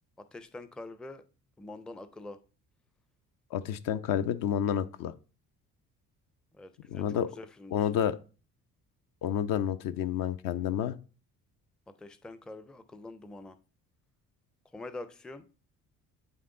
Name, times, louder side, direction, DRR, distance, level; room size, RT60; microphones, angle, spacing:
voice 1, 0.3-1.2 1.6-2.4 6.5-7.9 12.0-13.6 14.7-15.4, left 2 dB, ahead, 11 dB, 0.5 m, -45 dB
voice 2, 3.5-5.1 6.9-7.3 7.7-8.2 9.2-11.0, left 9 dB, 45° left, 11 dB, 0.6 m, -29 dB
8.8 x 3.5 x 3.8 m, 0.35 s
figure-of-eight pair, 50°, 45 cm